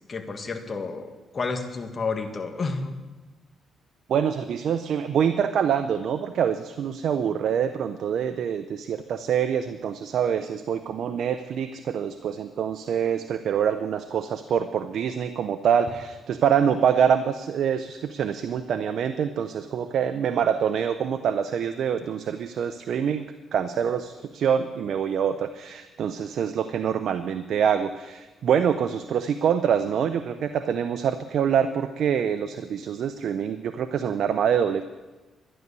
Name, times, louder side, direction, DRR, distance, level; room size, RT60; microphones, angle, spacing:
voice 1, 0.0-3.0, left 4 dB, 35° left, 5 dB, 1.7 m, -31 dB
voice 2, 4.1-23.3 23.5-34.8, right 8 dB, 65° right, 9 dB, 0.6 m, -25 dB
12.5 x 10.5 x 6.8 m, 1.2 s
cardioid pair, 90°, 0 cm